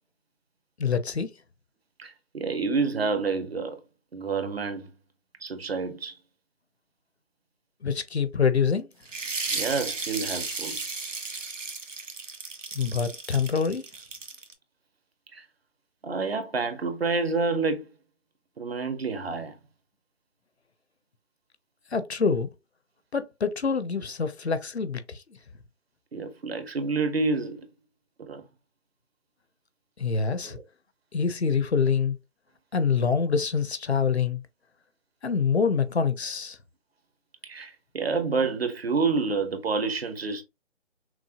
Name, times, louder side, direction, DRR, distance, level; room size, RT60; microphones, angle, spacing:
voice 1, 0.8-1.3 7.8-8.9 12.7-13.8 21.9-22.5 23.1-25.2 30.0-30.6 31.1-32.2 32.7-34.4 35.2-36.6, left 6 dB, 60° left, 0.8 m, -25 dB
voice 2, 2.0-3.8 4.1-4.9 5.4-6.2 9.5-10.8 15.3-15.5 16.0-17.9 18.6-19.6 26.1-27.7 28.2-28.4 30.4-30.6 37.4-40.4, right 4 dB, 55° right, 1.0 m, -28 dB
sound 1, 9.1-14.5, right 4 dB, 90° right, 1.3 m, -34 dB
6.0 x 2.1 x 2.8 m
figure-of-eight pair, 165°, 37 cm